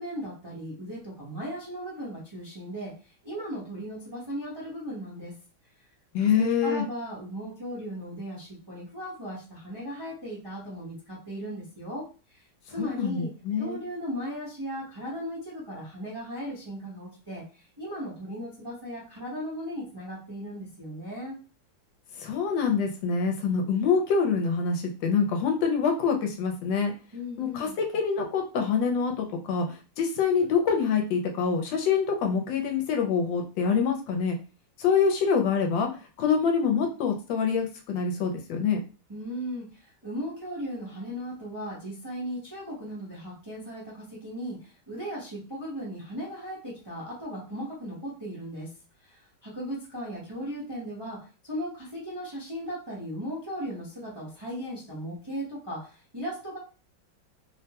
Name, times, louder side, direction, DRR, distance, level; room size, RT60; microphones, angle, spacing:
voice 1, 0.0-5.3 6.2-13.3 13.6-21.4 27.1-27.8 39.1-48.7 49.0-56.6, equal, 25° right, -6 dB, 0.5 m, -37 dB
voice 2, 6.1-6.8 12.8-13.8 22.2-26.9 27.4-34.4 34.8-35.9 36.2-38.8, left 6 dB, 75° left, 3 dB, 1.3 m, -25 dB
3.4 x 2.1 x 2.8 m, 0.34 s
omnidirectional pair, 2.1 m